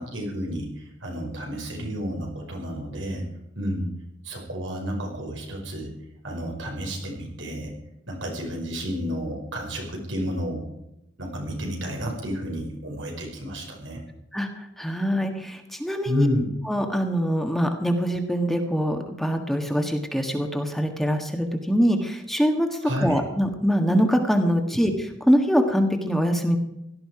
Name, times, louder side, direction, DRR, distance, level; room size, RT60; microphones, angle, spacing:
voice 1, 0.0-3.3 3.6-3.9 4.2-5.9 6.2-7.7 8.1-10.7 11.2-14.0 16.1-16.5 22.8-23.2 24.6-24.8, equal, 80° right, 1 dB, 5.4 m, -30 dB
voice 2, 14.3-16.3 16.7-26.6, equal, ahead, 4 dB, 1.6 m, -24 dB
17.5 x 13.0 x 5.0 m, 0.84 s
head